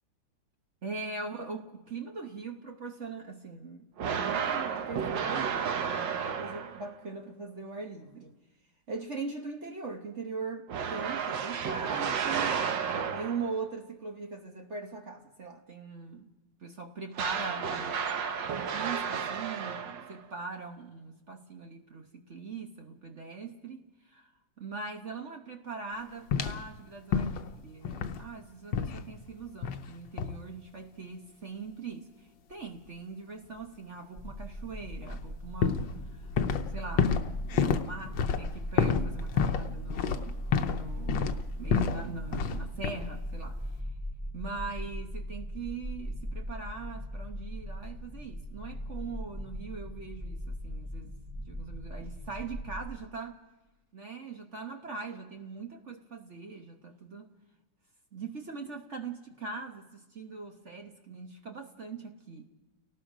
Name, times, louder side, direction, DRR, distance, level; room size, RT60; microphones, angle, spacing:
voice 1, 0.8-8.3 8.9-12.6 13.1-16.3 16.6-24.3 24.6-37.2 37.4-41.3 41.6-43.7 44.3-51.1 51.4-53.4 53.9-57.3 58.1-62.5, right 4 dB, 40° right, 1.4 m, -41 dB
sound 1, 4.0-7.0 10.7-13.6 17.1-20.2, right 7 dB, 70° right, 1.7 m, -32 dB
sound 2, 26.3-26.7 27.1-27.5 27.8-28.3 28.7-29.0 29.6-29.9 30.2-30.4 35.1-35.2 35.6-36.7 37.0-40.8 41.1-42.0 42.3-42.6 42.8-43.2, left 7 dB, 75° left, 1.6 m, -28 dB
sound 3, 34.2-52.9, equal, 15° right, 5.1 m, -39 dB
29.5 x 18.5 x 5.1 m
omnidirectional pair, 2.1 m